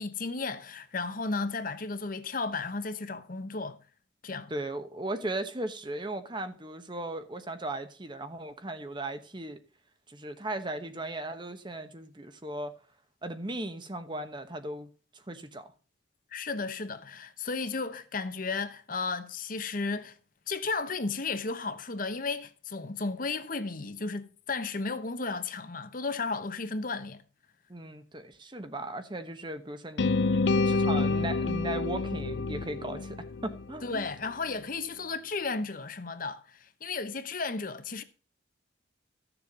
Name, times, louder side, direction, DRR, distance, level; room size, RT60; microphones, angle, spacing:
voice 1, 0.0-3.8 4.2-4.5 16.3-20.2 20.5-27.2 33.8-38.0, left 4 dB, 45° left, 1.0 m, -34 dB
voice 2, 4.5-9.6 10.1-12.7 13.2-15.7 27.7-30.1 30.6-34.0, right 1 dB, 25° right, 1.1 m, -37 dB
sound 1, 30.0-34.1, left 3 dB, 60° left, 0.5 m, -28 dB
14.5 x 7.0 x 5.2 m
head